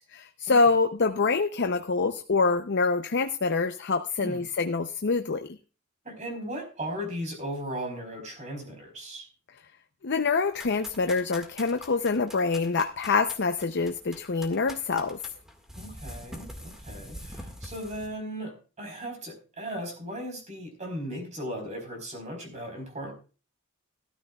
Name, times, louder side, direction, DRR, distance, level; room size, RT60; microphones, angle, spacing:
voice 1, 0.1-5.5 10.0-15.2, left 4 dB, 50° left, 8 dB, 0.6 m, -25 dB
voice 2, 6.0-9.3 15.8-23.1, equal, 35° right, 4 dB, 4.2 m, -37 dB
sound 1, 10.5-18.1, equal, ahead, 1.8 m, -44 dB
15.0 x 13.5 x 2.3 m, 0.34 s
head